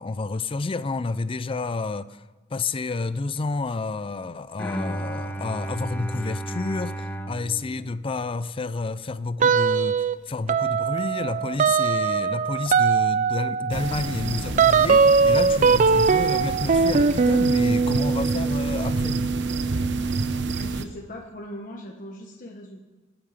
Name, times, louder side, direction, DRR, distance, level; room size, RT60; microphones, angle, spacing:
voice 1, 0.0-2.2 2.5-19.2, left 3 dB, 25° left, 0.4 m, -30 dB
Bowed string instrument, 4.6-8.7, right 1 dB, 10° left, 0.9 m, -33 dB
sound 1, 9.4-10.2 10.5-20.8, right 5 dB, 40° right, 0.4 m, -21 dB
sound 2, 13.7-20.8, right 3 dB, 60° right, 0.7 m, -30 dB
voice 2, 20.4-22.8, left 1 dB, 45° left, 1.4 m, -40 dB
21.0 x 8.9 x 5.1 m
head